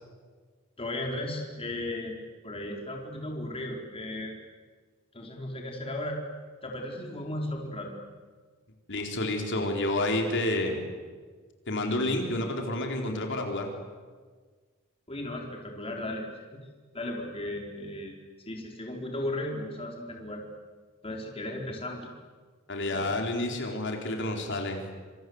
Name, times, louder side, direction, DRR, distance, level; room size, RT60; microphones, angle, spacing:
voice 1, 0.8-2.2 2.4-4.3 5.1-6.2 6.6-7.9 15.1-16.3 16.9-18.2 18.5-20.4 21.0-22.1 22.9-23.1, left 1 dB, 25° left, 1 dB, 4.2 m, -35 dB
voice 2, 8.9-10.8 11.7-13.7 22.7-24.8, left 1 dB, 60° left, 2 dB, 4.2 m, -29 dB
27.5 x 27.0 x 8.0 m, 1.5 s
head